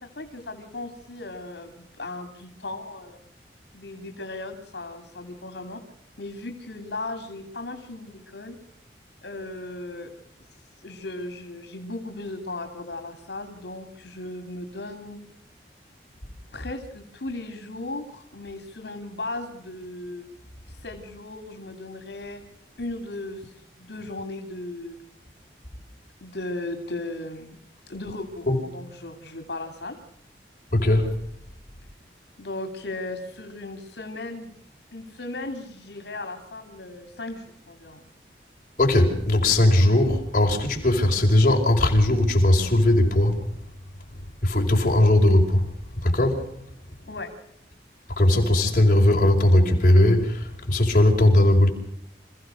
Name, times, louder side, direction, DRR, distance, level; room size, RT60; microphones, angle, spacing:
voice 1, 0.0-3.2 3.7-5.8 6.2-8.6 9.2-10.1 10.8-15.2 16.5-20.2 20.7-22.4 22.8-25.0 26.2-27.6 27.9-30.0 32.4-34.6 34.9-38.1 47.1-47.3, left 2 dB, 75° left, 3.0 m, -36 dB
voice 2, 30.7-31.1 38.8-43.4 44.4-45.6 46.0-46.4 48.2-51.7, left 1 dB, 45° left, 4.8 m, -19 dB
27.5 x 16.0 x 6.4 m
head